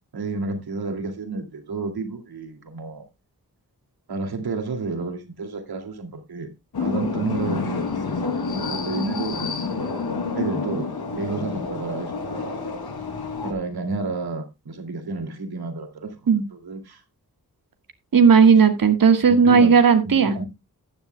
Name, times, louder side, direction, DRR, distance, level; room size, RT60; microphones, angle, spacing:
voice 1, 0.1-3.0 4.1-6.5 6.8-9.6 10.3-12.6 13.4-17.0 19.2-19.8 20.0-20.4, right 3 dB, 80° right, 2.5 m, -31 dB
sound 1, 6.7-13.5, left 4 dB, 90° left, 2.7 m, -28 dB
voice 2, 18.1-20.3, right 6 dB, 65° right, 1.6 m, -15 dB
14.5 x 10.5 x 2.2 m
wide cardioid pair, 120°, 37 cm